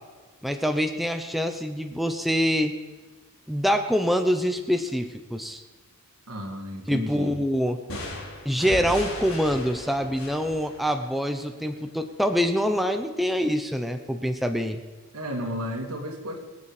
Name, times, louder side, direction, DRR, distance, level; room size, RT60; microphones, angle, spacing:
voice 1, 0.4-2.7 3.5-5.6 6.9-7.8 8.4-14.8, equal, ahead, 6 dB, 0.7 m, -25 dB
voice 2, 6.3-7.3 15.1-16.4, equal, 85° right, 2 dB, 2.5 m, -32 dB
sound 1, 7.9-11.6, left 1 dB, 75° left, 3.4 m, -37 dB
22.5 x 8.5 x 4.9 m, 1.4 s
head